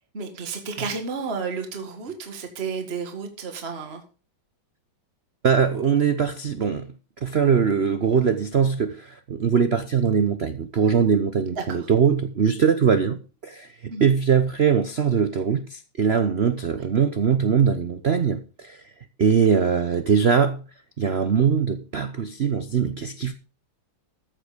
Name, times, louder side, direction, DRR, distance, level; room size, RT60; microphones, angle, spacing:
voice 1, 0.1-4.0 11.6-11.9 13.9-14.1, right 5 dB, 30° right, 2.0 m, -32 dB
voice 2, 5.4-6.9 7.2-18.8 19.2-20.7 21.0-23.3, right 7 dB, 90° right, 0.5 m, -21 dB
14.5 x 7.9 x 5.1 m
omnidirectional pair, 2.3 m